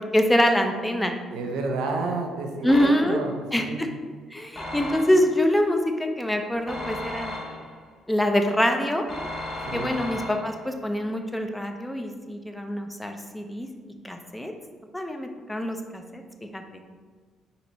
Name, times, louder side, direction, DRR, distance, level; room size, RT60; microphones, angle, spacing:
voice 1, 0.0-1.1 2.6-3.2 3.5-3.9 4.3-7.3 8.1-9.1 9.7-13.7 14.0-14.5 14.9-16.2 16.5-16.6, equal, 5° left, 4 dB, 0.5 m, -24 dB
voice 2, 1.3-3.8 9.7-9.9, right 3 dB, 85° right, 3 dB, 0.6 m, -30 dB
sound 1, 2.7-3.4 4.6-5.5 6.7-7.9 9.1-10.7, left 1 dB, 30° left, 1.3 m, -35 dB
4.3 x 2.9 x 4.1 m, 1.5 s
cardioid pair, 85°, 0 cm